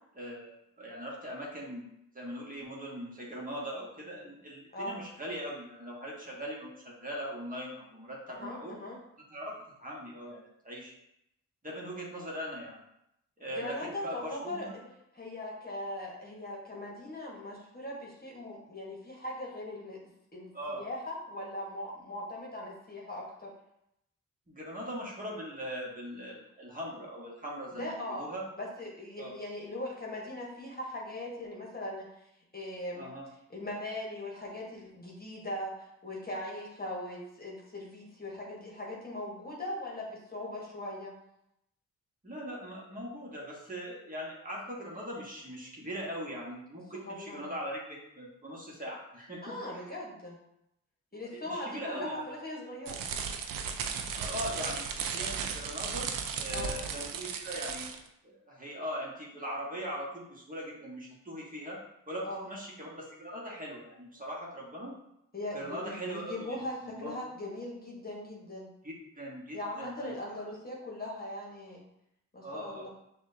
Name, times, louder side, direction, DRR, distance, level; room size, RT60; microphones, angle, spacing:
voice 1, 0.1-1.9 2.1-8.8 9.2-10.9 11.6-12.8 13.4-14.7 20.5-20.8 24.5-28.4 29.2-29.4 33.0-33.3 42.2-49.8 51.1-52.2 54.1-54.8 55.1-57.9 58.2-61.8 62.1-64.9 65.5-67.1 68.8-70.1 72.4-72.9, equal, 25° right, -4 dB, 1.4 m, -40 dB
voice 2, 8.3-9.0 13.5-14.7 15.1-20.0 20.3-23.5 27.7-28.3 28.6-32.1 32.5-33.1 33.5-41.1 46.9-47.5 49.4-50.4 51.1-53.1 56.5-56.8 62.2-62.5 65.3-68.7 69.5-71.8 72.3-72.9, left 1 dB, 30° left, -3 dB, 1.3 m, -40 dB
sound 1, 52.9-58.1, right 6 dB, 85° right, 0.5 m, -35 dB
6.0 x 2.4 x 2.7 m, 0.81 s
cardioid pair, 50°, 33 cm